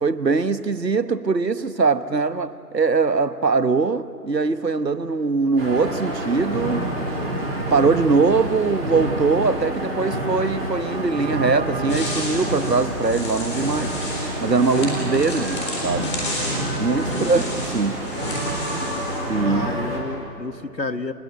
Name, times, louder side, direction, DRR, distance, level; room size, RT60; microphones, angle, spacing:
voice 1, 0.0-6.9 7.5-13.9 14.4-16.1 16.8-18.1 19.3-19.7, right 4 dB, 75° right, 1.2 m, -22 dB
sound 1, 5.6-20.0, right 1 dB, 35° right, 4.4 m, -27 dB
sound 2, 11.9-19.2, left 2 dB, 15° left, 3.9 m, -33 dB
voice 2, 19.4-21.1, left 3 dB, 85° left, 1.5 m, -31 dB
29.5 x 17.0 x 9.3 m
figure-of-eight pair, 155°, 49 cm